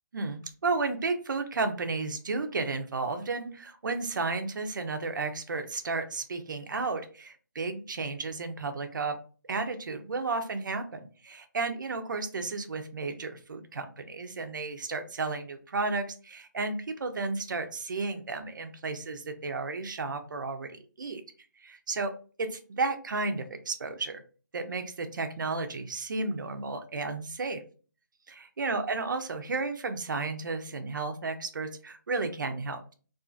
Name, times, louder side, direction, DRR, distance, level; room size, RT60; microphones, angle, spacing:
voice 1, 0.1-9.2 9.5-21.2 21.6-22.1 22.4-24.2 24.5-27.6 28.3-32.9, right 3 dB, 70° right, 7 dB, 0.5 m, -33 dB
2.5 x 2.4 x 2.3 m, 0.39 s
hypercardioid pair, 170°, 11 cm